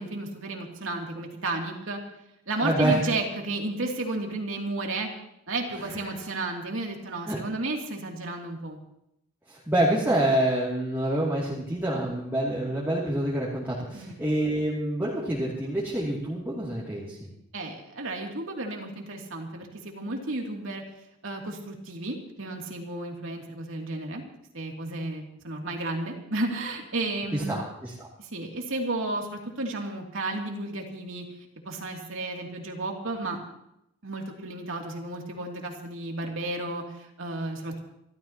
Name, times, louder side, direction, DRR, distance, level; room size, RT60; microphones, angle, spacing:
voice 1, 0.0-2.0 2.5-5.1 5.5-8.8 13.9-14.1 17.5-20.8 21.2-24.2 24.5-27.6 28.2-31.2 31.6-33.4 34.0-37.8, right 2 dB, 70° right, 1 dB, 2.7 m, -33 dB
voice 2, 2.6-3.0 5.8-6.0 7.2-7.4 9.5-17.3 27.3-27.9, right 1 dB, 10° right, -8 dB, 2.6 m, -27 dB
27.5 x 13.5 x 2.9 m, 0.80 s
head